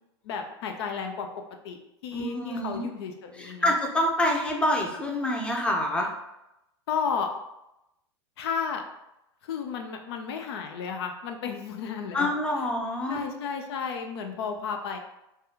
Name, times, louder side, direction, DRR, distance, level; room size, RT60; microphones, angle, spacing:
voice 1, 0.2-1.3 1.6-3.7 6.9-7.3 8.4-8.8 9.4-12.3 13.1-15.0, left 6 dB, 65° left, 4 dB, 0.4 m, -33 dB
voice 2, 2.1-2.9 3.3-6.1 12.1-13.2, left 1 dB, 5° left, 1 dB, 0.6 m, -27 dB
3.3 x 2.3 x 2.8 m, 0.88 s
hypercardioid pair, 90°, 14 cm